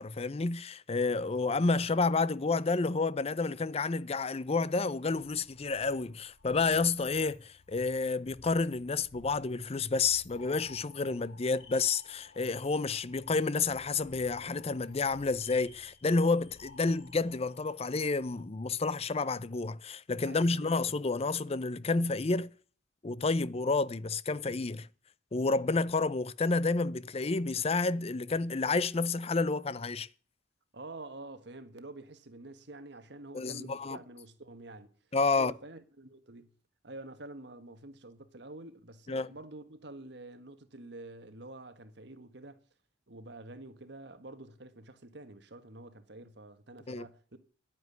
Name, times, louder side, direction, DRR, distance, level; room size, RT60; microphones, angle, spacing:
voice 1, 0.0-22.5 23.0-24.9 25.3-30.1 33.3-34.0 35.1-35.5 39.1-39.3 46.9-47.1, left 3 dB, 35° left, 0.5 m, -30 dB
sound 1, 4.6-18.4, left 4 dB, 80° left, 3.0 m, -57 dB
voice 2, 20.3-20.8 30.7-34.9 35.3-36.5 36.8-42.6 43.1-47.4, right 2 dB, 65° right, 1.6 m, -48 dB
10.5 x 9.4 x 9.4 m
head